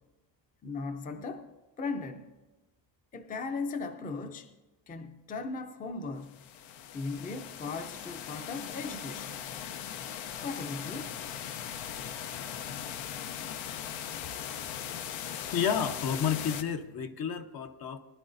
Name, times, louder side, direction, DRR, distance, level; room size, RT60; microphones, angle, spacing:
voice 1, 0.6-1.5 1.8-2.3 3.1-4.5 4.9-6.4 6.9-9.4 10.4-11.1, left 4 dB, 20° left, 0.5 m, -37 dB
sound 1, 6.3-16.6, left 9 dB, 85° left, 0.8 m, -39 dB
voice 2, 15.1-18.0, left 7 dB, 55° left, 0.8 m, -31 dB
20.0 x 11.0 x 2.6 m
cardioid pair, 130°, 45 cm